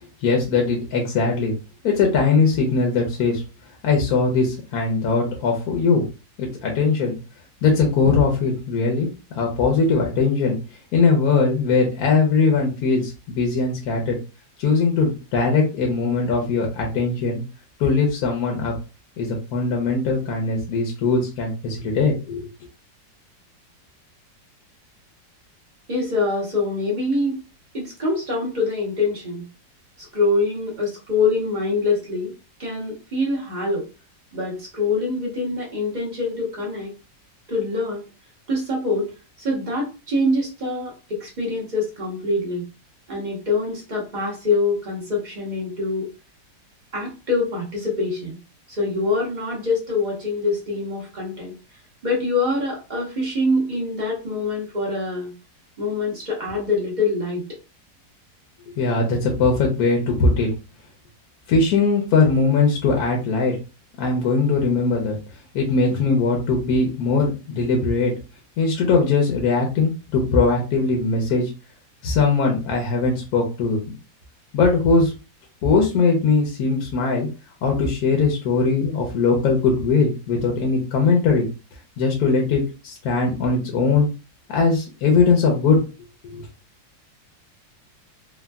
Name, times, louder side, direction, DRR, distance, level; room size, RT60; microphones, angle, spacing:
voice 1, 0.2-1.5 1.8-3.4 3.8-6.0 6.4-7.2 7.6-9.1 9.3-10.6 10.9-14.2 14.6-17.4 17.8-18.7 19.2-22.5 58.8-60.5 61.5-63.6 64.0-65.2 65.5-68.1 68.6-71.5 72.0-73.8 74.5-75.1 75.6-77.3 77.6-81.5 82.0-84.1 84.5-85.8 86.2-86.5, left 4 dB, 65° left, 1 dB, 1.1 m, -20 dB
voice 2, 25.9-27.4 27.7-29.5 30.0-32.3 32.6-33.8 34.3-36.9 37.5-38.0 38.5-42.7 43.1-46.1 46.9-48.4 48.7-51.5 52.0-55.3 55.8-57.4, left 3 dB, 40° right, -3 dB, 0.6 m, -24 dB
3.4 x 2.2 x 2.2 m, 0.31 s
omnidirectional pair, 2.0 m